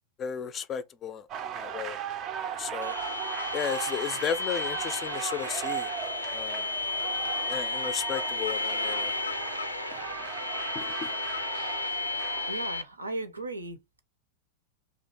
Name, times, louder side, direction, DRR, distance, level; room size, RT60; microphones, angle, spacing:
voice 1, 0.2-1.3 1.5-2.0 2.4-2.9 3.5-5.9 6.3-6.7 7.5-9.1 10.7-11.1, left 8 dB, 25° left, 0.4 m, -34 dB
sound 1, 1.3-12.5, right 9 dB, 35° right, 0.4 m, -37 dB
sound 2, 2.8-12.8, left 3 dB, 85° left, 0.4 m, -33 dB
voice 2, 12.5-13.8, right 2 dB, 80° right, 0.6 m, -36 dB
2.8 x 2.4 x 3.5 m
figure-of-eight pair, 90°, 0 cm